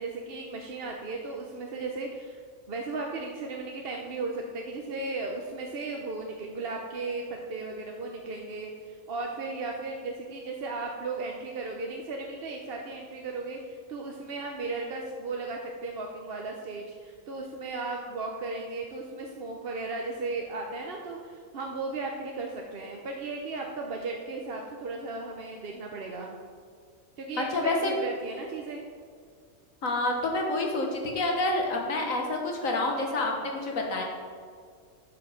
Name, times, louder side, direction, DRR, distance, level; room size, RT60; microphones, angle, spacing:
voice 1, 0.0-2.4 2.7-26.4 27.2-28.9, right 3 dB, 50° right, 0 dB, 0.9 m, -36 dB
voice 2, 27.4-27.9 29.8-34.0, left 2 dB, 75° left, 1 dB, 1.8 m, -28 dB
10.0 x 5.9 x 5.0 m, 2.1 s
omnidirectional pair, 1.4 m